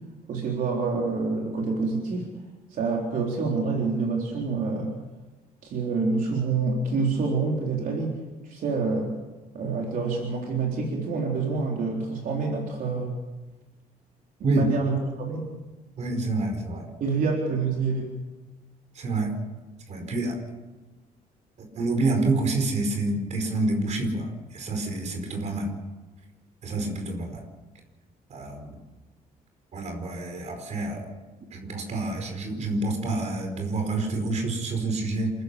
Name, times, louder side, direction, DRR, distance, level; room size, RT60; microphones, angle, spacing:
voice 1, 0.3-2.3 2.7-4.9 5.6-8.2 8.4-9.1 9.5-13.1 14.5-15.5 17.0-18.1, right 4 dB, 65° right, -1 dB, 3.9 m, -27 dB
voice 2, 16.0-16.9 18.9-19.3 19.9-20.4 21.7-25.7 26.6-27.4 28.3-28.8 29.7-31.1 31.5-35.3, right 2 dB, 50° right, 5 dB, 4.8 m, -28 dB
28.0 x 15.0 x 7.1 m, 1.2 s
cardioid pair, 155°, 16 cm